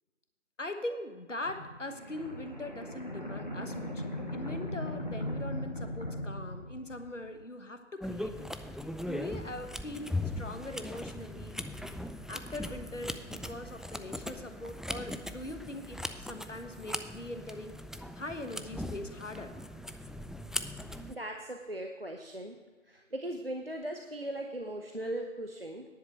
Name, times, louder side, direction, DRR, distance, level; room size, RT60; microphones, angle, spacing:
voice 1, 0.6-4.0 4.3-8.5 9.0-11.5 12.3-17.7 18.1-19.5, left 2 dB, 75° left, 7 dB, 1.3 m, -41 dB
sound 1, 1.4-7.3, left 1 dB, 35° left, 1.4 m, -38 dB
sound 2, 8.0-21.1, left 1 dB, ahead, 0.3 m, -39 dB
voice 2, 21.1-22.6 22.9-25.9, right 1 dB, 50° right, 3 dB, 0.7 m, -38 dB
10.5 x 7.7 x 6.3 m, 1.4 s
figure-of-eight pair, 175°, 37 cm